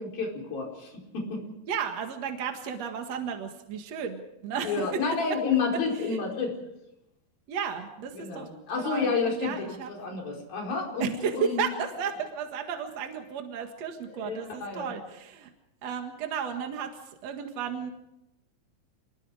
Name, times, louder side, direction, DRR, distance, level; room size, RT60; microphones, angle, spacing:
voice 1, 0.0-1.4 4.6-6.5 8.2-11.6 14.2-14.9, left 5 dB, 50° left, 0 dB, 6.4 m, -30 dB
voice 2, 1.7-5.0 5.9-6.2 7.5-8.5 8.8-9.9 11.0-15.5 15.8-17.9, right 7 dB, 55° right, 4 dB, 1.9 m, -33 dB
28.5 x 21.5 x 4.9 m, 0.85 s
omnidirectional pair, 5.4 m